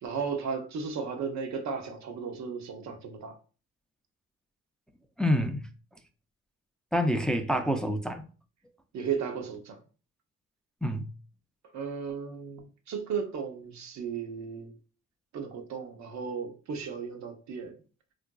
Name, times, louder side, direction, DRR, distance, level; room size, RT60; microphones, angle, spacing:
voice 1, 0.0-3.4 8.9-9.8 11.7-14.7 15.3-17.7, right 6 dB, 65° right, 0.7 m, -35 dB
voice 2, 5.2-5.7 6.9-8.2 10.8-11.1, equal, 5° left, 0.3 m, -27 dB
3.8 x 2.5 x 2.2 m
cardioid pair, 90°, 30 cm